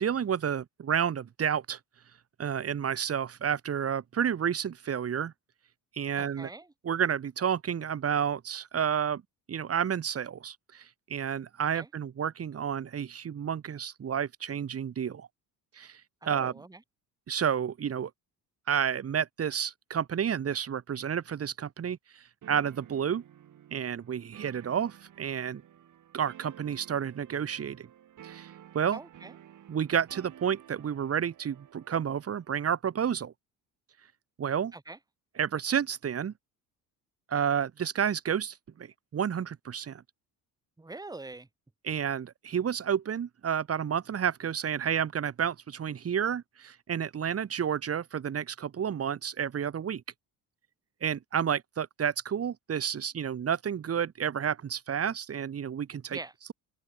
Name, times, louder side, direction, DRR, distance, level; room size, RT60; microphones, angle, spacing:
voice 1, 0.0-1.8 2.4-5.3 6.0-6.5 6.8-9.2 9.5-15.3 15.8-16.5 17.3-18.1 18.7-23.2 23.7-25.6 26.1-27.9 28.2-29.0 29.7-33.3 34.4-34.7 35.4-36.3 37.3-40.0 41.8-50.0 51.0-56.2, right 8 dB, 40° right, 2.0 m, -30 dB
voice 2, 6.2-6.7 11.7-11.9 16.2-16.8 28.9-29.3 34.7-35.0 40.8-41.5 56.1-56.3, right 2 dB, 10° right, 1.5 m, -43 dB
sound 1, 22.4-32.5, right 10 dB, 55° right, 3.9 m, -53 dB
cardioid pair, 110°, 37 cm